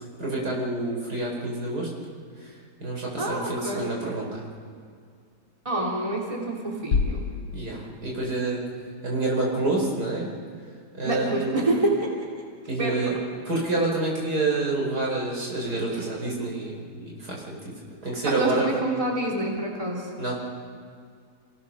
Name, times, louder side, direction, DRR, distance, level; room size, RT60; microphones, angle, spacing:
voice 1, 0.2-1.9 2.8-4.4 7.5-8.6 9.0-10.3 11.0-11.5 12.7-13.2 13.5-16.9 17.2-17.6 18.0-18.7 20.2-20.4, right 2 dB, 75° right, -3 dB, 5.4 m, -27 dB
voice 2, 3.2-3.9 5.6-7.2 11.0-12.1 12.8-13.0 15.9-16.0 18.3-20.1, right 2 dB, 20° right, -3 dB, 3.4 m, -27 dB
sound 1, 6.9-8.7, left 5 dB, 85° left, 1.4 m, -29 dB
28.5 x 18.5 x 6.4 m, 2.2 s
omnidirectional pair, 1.7 m